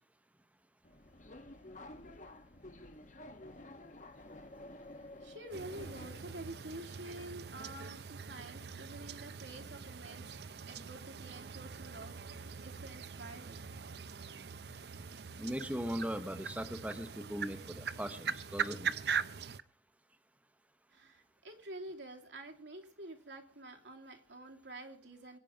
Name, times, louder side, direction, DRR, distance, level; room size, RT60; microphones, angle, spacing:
Subway metro underground, 0.8-6.5, left 1 dB, 45° left, 1.2 m, -51 dB
voice 1, 5.0-10.4 10.7-13.9 20.9-25.4, right 2 dB, 85° right, 2 dB, 2.8 m, -48 dB
sound 1, 5.5-19.6, right 6 dB, 60° right, 0.6 m, -42 dB
voice 2, 15.4-18.9, equal, 10° right, 9 dB, 0.9 m, -39 dB
22.0 x 9.3 x 5.0 m, 0.42 s
head